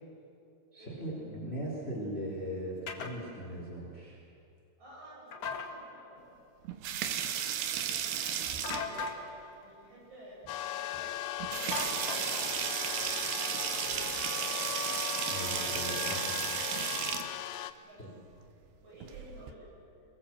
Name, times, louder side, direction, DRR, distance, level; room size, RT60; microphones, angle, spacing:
voice 1, 0.7-4.2 15.3-16.3 18.0-18.1, equal, 15° left, -3 dB, 4.3 m, -39 dB
sound 1, 2.9-3.1 5.3-5.7 8.6-9.2 11.7-12.5, left 4 dB, 50° left, 2.3 m, -37 dB
voice 2, 4.8-6.7 7.7-14.3 17.8-18.1 18.5-19.7, equal, 45° right, -5 dB, 9.4 m, -54 dB
sound 2, 6.7-9.1 10.5-10.6 10.9-11.0 11.4-17.3 18.9-19.5, right 9 dB, 85° right, 3.3 m, -34 dB
sound 3, 10.5-17.7, left 12 dB, 75° left, 2.2 m, -38 dB
28.0 x 21.5 x 7.5 m, 2.6 s
omnidirectional pair, 4.7 m